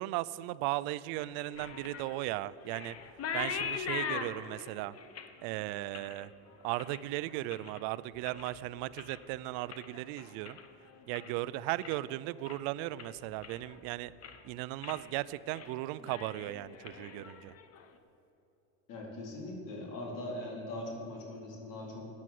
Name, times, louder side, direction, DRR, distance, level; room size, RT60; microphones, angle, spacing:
voice 1, 0.0-3.0 3.3-5.0 5.4-6.3 6.6-10.6 11.1-14.1 14.4-17.5, right 16 dB, 80° right, 17 dB, 0.6 m, -36 dB
sound 1, 1.1-7.8 8.1-8.6 8.9-11.4 11.7-12.1 12.5-12.6 13.0-13.8 14.1-14.5 14.8-15.0 15.4-15.7 16.0-17.8, left 7 dB, 40° left, 1.2 m, -42 dB
voice 2, 18.9-22.1, left 1 dB, 60° left, -1 dB, 4.2 m, -41 dB
14.0 x 9.8 x 7.7 m, 2.9 s
cardioid pair, 145°, 36 cm